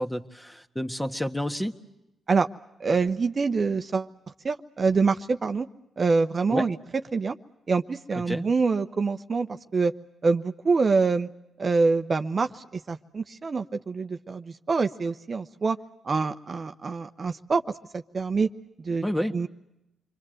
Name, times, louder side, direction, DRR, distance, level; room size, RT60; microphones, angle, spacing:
voice 1, 0.0-1.7 6.5-6.7 8.3-8.4 19.0-19.4, equal, 10° left, 7 dB, 1.7 m, -29 dB
voice 2, 2.8-4.1 4.4-5.7 6.0-6.8 7.1-7.3 7.7-9.9 10.2-11.3 11.6-15.8 16.0-17.6 17.9-18.5 18.8-19.1 19.3-19.5, right 4 dB, 45° right, 8 dB, 1.0 m, -25 dB
28.0 x 23.5 x 7.8 m, 0.89 s
supercardioid pair, 50°, 0 cm